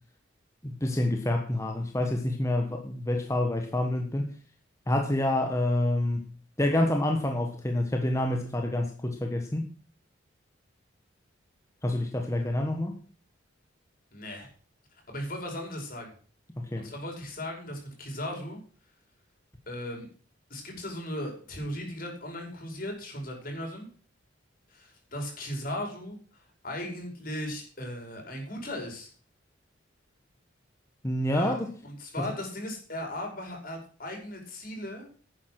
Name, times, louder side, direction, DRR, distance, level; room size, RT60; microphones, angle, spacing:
voice 1, 0.6-4.3 4.9-6.2 6.6-9.7 11.8-13.0 16.6-16.9 31.0-31.7, left 1 dB, 15° left, 3 dB, 1.4 m, -27 dB
voice 2, 14.1-14.5 14.9-16.1 16.8-18.6 19.7-20.1 20.5-23.9 24.7-29.1 31.3-35.1, left 1 dB, 45° left, 2 dB, 5.4 m, -37 dB
11.0 x 9.7 x 6.1 m, 0.41 s
head